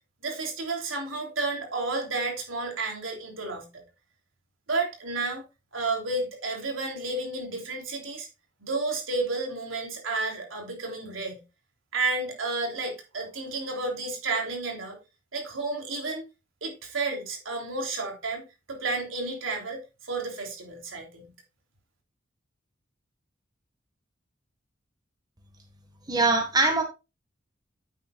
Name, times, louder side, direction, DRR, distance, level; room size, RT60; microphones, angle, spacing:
voice 1, 0.2-3.7 4.7-5.4 5.7-8.3 8.6-11.4 11.9-15.0 15.3-16.2 16.6-21.2, right 3 dB, 85° right, 3.4 m, -31 dB
voice 2, 26.1-26.8, right 3 dB, 20° right, 1.6 m, -22 dB
9.5 x 8.4 x 2.4 m
head